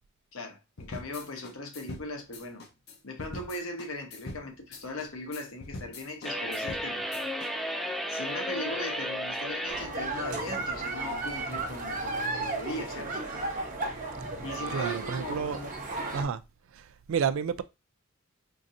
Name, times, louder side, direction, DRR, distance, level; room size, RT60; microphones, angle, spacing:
voice 1, 0.3-2.6 3.0-7.2 8.1-13.2 13.5-13.7 14.4-15.7 16.1-16.3, left 1 dB, 80° left, 1.0 m, -39 dB
sound 1, 0.8-7.5, left 2 dB, 55° left, 0.7 m, -43 dB
sound 2, 6.2-9.9, equal, ahead, 0.4 m, -33 dB
sound 3, 9.7-16.2, right 2 dB, 40° right, 0.9 m, -34 dB
voice 2, 14.7-15.6 16.1-16.4 16.7-17.6, right 7 dB, 70° right, 0.3 m, -30 dB
4.5 x 2.5 x 2.6 m
head